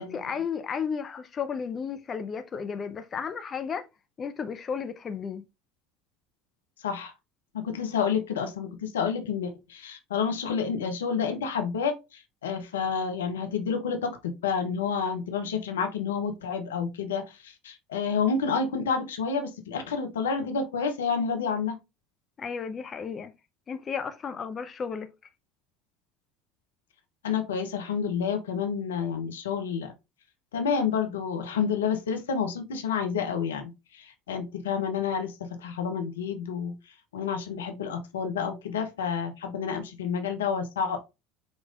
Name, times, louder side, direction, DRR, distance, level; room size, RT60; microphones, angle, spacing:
voice 1, 0.0-3.9 4.2-5.5 22.4-23.3 23.7-25.1, left 6 dB, 35° left, 0.6 m, -33 dB
voice 2, 7.5-21.8 27.2-29.9 30.5-36.7 37.1-41.0, left 6 dB, 85° left, 0.7 m, -29 dB
5.3 x 3.1 x 2.4 m
hypercardioid pair, 70°, 0 cm